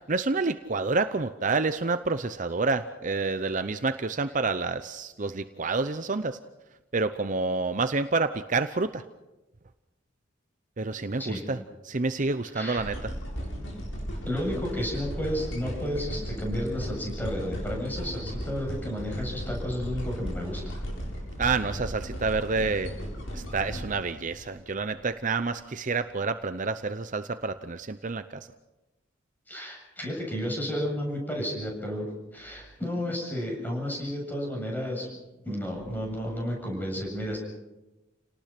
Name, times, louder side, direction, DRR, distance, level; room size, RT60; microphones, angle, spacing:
voice 1, 0.0-6.4 6.9-9.0 10.8-11.6 11.8-13.1 21.4-22.9 23.3-28.4, right 3 dB, 40° right, 11 dB, 0.7 m, -28 dB
sound 1, 12.8-25.0 25.5-25.6, equal, 80° left, 7.2 m, -36 dB
voice 2, 14.2-20.8 29.5-32.1 32.3-35.1 35.4-37.4, equal, 10° left, 0 dB, 7.7 m, -32 dB
30.0 x 18.5 x 6.0 m, 1.0 s
head